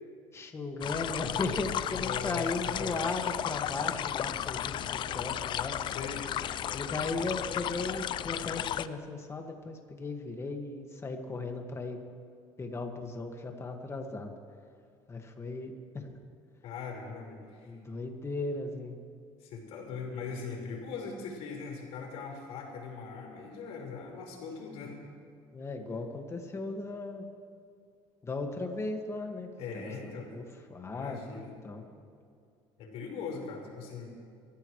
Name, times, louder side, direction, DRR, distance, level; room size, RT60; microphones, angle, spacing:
voice 1, 0.3-5.7 6.7-12.0 12.6-14.3 15.1-16.2 17.7-19.0 25.5-27.3 28.2-29.5 29.7-30.4 30.7-31.2 31.6-31.8, left 3 dB, 25° left, 4 dB, 1.9 m, -36 dB
sound 1, 0.8-8.9, left 11 dB, 45° left, 0.5 m, -34 dB
voice 2, 1.9-3.0 5.9-6.2 16.6-17.8 19.4-25.0 29.6-30.3 30.9-31.5 32.8-34.1, left 5 dB, 70° left, -1 dB, 4.7 m, -40 dB
24.5 x 14.0 x 3.2 m, 2.4 s
cardioid pair, 110°, 11 cm